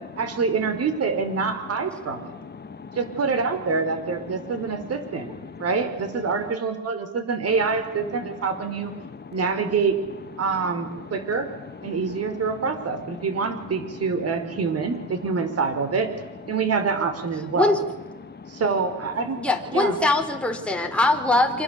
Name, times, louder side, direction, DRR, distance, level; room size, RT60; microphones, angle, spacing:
voice 1, 0.2-2.3 3.0-5.3 5.6-8.9 9.3-10.0 10.4-11.5 11.8-16.1 16.5-17.8 18.5-19.4 19.7-20.0, right 5 dB, 55° right, 9 dB, 5.3 m, -26 dB
voice 2, 2.1-3.0 4.3-5.7 6.3-6.4 8.2-8.3 9.0-9.3 10.6-12.5 13.1-14.2 14.5-14.6 18.2-18.6, left 5 dB, 35° left, 10 dB, 2.0 m, -41 dB
voice 3, 19.4-21.6, left 2 dB, 5° left, 2 dB, 4.4 m, -22 dB
26.5 x 26.0 x 8.5 m, 1.2 s
cardioid pair, 90°, 30 cm